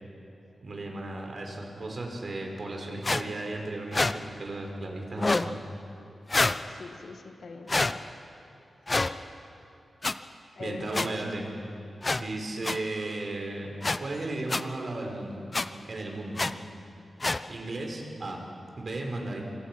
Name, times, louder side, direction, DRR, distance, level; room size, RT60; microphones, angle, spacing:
voice 1, 0.6-5.6 10.6-11.5 12.1-13.7 14.0-15.4 15.8-16.4 17.5-18.4 18.8-19.4, right 2 dB, 50° right, 1 dB, 4.6 m, -35 dB
sound 1, 3.0-3.2 3.9-4.1 5.2-5.5 6.3-6.6 7.7-7.9 8.9-9.1 10.0-10.1 10.9-11.1 12.0-12.2 12.6-12.8 13.8-14.0 14.5-14.6 15.5-15.7 16.4-16.5 17.2-17.4, left 2 dB, 30° left, 0.7 m, -26 dB
voice 2, 6.7-8.0 10.6-11.4, left 4 dB, 70° left, 5 dB, 2.0 m, -43 dB
25.5 x 25.5 x 6.0 m, 2.9 s
wide cardioid pair, 105°, 0 cm